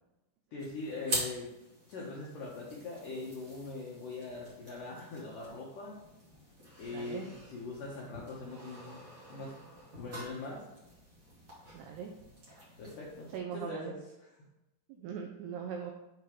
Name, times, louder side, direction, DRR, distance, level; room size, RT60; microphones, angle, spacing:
voice 1, 0.5-1.5 1.9-6.0 6.8-9.0 9.3-9.5 10.0-10.6 12.8-14.3, left 3 dB, 85° left, -5 dB, 1.9 m, -42 dB
sound 1, 0.6-13.4, right 1 dB, 50° right, 1.2 m, -45 dB
voice 2, 6.9-7.3 11.7-12.1 13.3-13.9 14.9-15.9, right 7 dB, 85° right, 2 dB, 2.3 m, -40 dB
8.0 x 3.1 x 4.9 m, 0.96 s
omnidirectional pair, 5.4 m